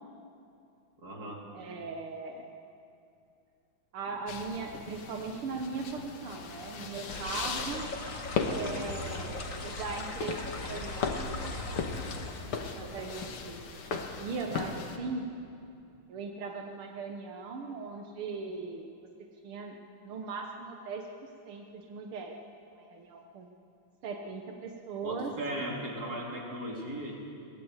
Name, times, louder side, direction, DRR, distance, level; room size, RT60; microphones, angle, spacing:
voice 1, 1.0-1.4 25.0-27.2, right 1 dB, 45° right, -1 dB, 3.9 m, -37 dB
voice 2, 1.5-2.5 3.9-7.8 8.4-11.2 11.5-11.7 12.7-15.2 16.1-18.9 19.4-19.8 20.0-22.3 22.8-23.5 24.0-25.3, right 4 dB, 85° right, 3 dB, 2.2 m, -39 dB
sound 1, 4.3-15.0, left 5 dB, 85° left, 2.4 m, -38 dB
sound 2, 7.1-12.4, left 2 dB, 40° left, 1.9 m, -39 dB
22.5 x 19.0 x 8.2 m, 2.6 s
omnidirectional pair, 2.3 m